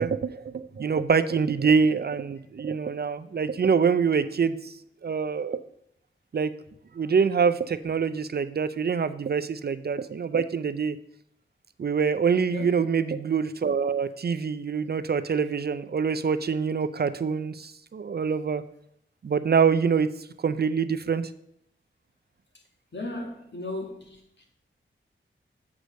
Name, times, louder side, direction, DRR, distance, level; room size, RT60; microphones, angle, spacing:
voice 1, 0.0-4.7 5.0-5.6 6.3-6.5 6.9-11.0 11.8-18.6 19.2-20.1 20.4-21.3, right 6 dB, 50° right, 0.5 m, -25 dB
voice 2, 22.9-24.2, left 2 dB, 60° left, 2.1 m, -35 dB
8.0 x 4.9 x 6.3 m
wide cardioid pair, 70°, 21 cm